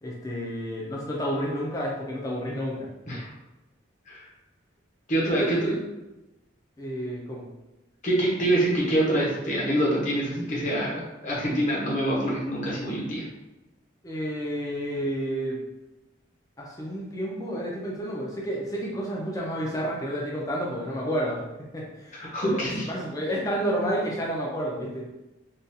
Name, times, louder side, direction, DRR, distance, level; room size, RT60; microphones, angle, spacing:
voice 1, 0.0-2.9 5.4-5.8 6.8-7.4 14.0-15.6 16.6-21.4 21.7-25.1, equal, 15° left, -3 dB, 0.5 m, -30 dB
voice 2, 5.1-5.7 8.0-13.2 22.1-22.9, right 1 dB, 40° left, -5 dB, 0.9 m, -25 dB
3.9 x 2.4 x 2.7 m, 1.0 s
head